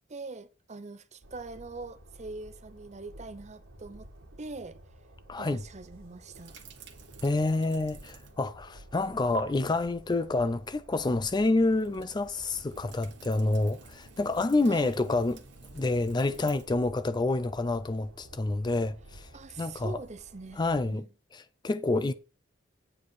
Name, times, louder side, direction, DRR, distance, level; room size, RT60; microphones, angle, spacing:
voice 1, 0.1-4.1 4.4-4.8 5.4-6.6 14.7-14.9 19.3-20.6 20.9-21.1, right 3 dB, 35° right, 0.8 m, -43 dB
Train, 1.2-20.8, right 1 dB, 85° right, 1.5 m, -52 dB
voice 2, 5.3-5.6 7.2-15.4 15.7-19.3 19.6-20.0 20.6-21.0 21.3-22.1, left 2 dB, 20° left, 0.4 m, -28 dB
sound 1, 6.3-8.5 8.8-9.4 11.5-16.7, right 4 dB, 65° right, 1.6 m, -48 dB
8.7 x 5.0 x 6.3 m
head